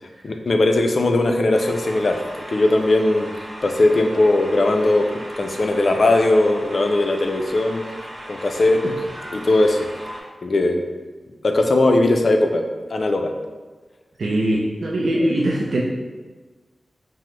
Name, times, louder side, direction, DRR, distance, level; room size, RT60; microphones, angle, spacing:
voice 1, 0.2-2.2 2.5-3.3 3.6-5.1 5.4-7.8 8.3-8.8 9.3-9.9 10.4-10.8 11.4-12.6 12.9-13.3, left 2 dB, 55° left, 4 dB, 0.4 m, -18 dB
sound 1, 1.5-10.2, equal, 35° right, 0.9 m, -37 dB
voice 2, 14.2-15.8, right 1 dB, 75° right, -4 dB, 0.4 m, -22 dB
5.8 x 2.0 x 3.1 m, 1.3 s
wide cardioid pair, 120°, 0 cm